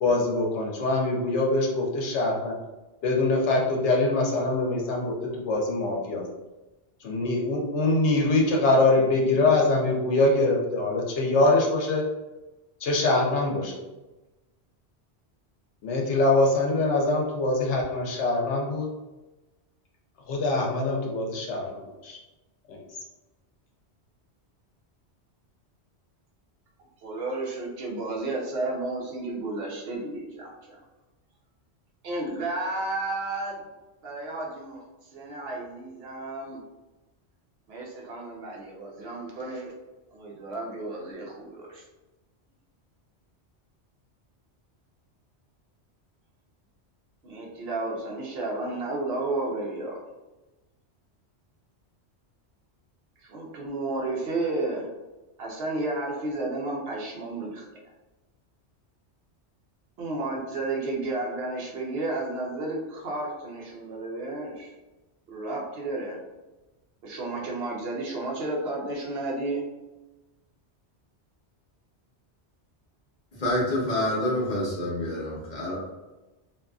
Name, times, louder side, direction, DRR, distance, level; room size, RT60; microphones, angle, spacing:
voice 1, 0.0-2.5 3.0-6.2 7.0-12.0 12.8-13.7 15.8-18.9 20.3-22.2 22.7-22.8, left 2 dB, 80° left, -1 dB, 0.9 m, -24 dB
voice 2, 27.0-30.8 32.0-33.6 34.0-34.8 35.1-36.6 37.7-39.7 40.1-41.8 47.2-50.0 53.2-54.9 55.4-57.7 60.0-64.7 65.3-66.2 67.0-69.6, right 2 dB, 65° right, -2 dB, 0.8 m, -32 dB
voice 3, 73.3-75.8, left 1 dB, 45° left, -5 dB, 0.9 m, -27 dB
2.6 x 2.4 x 2.3 m, 1.1 s
omnidirectional pair, 1.1 m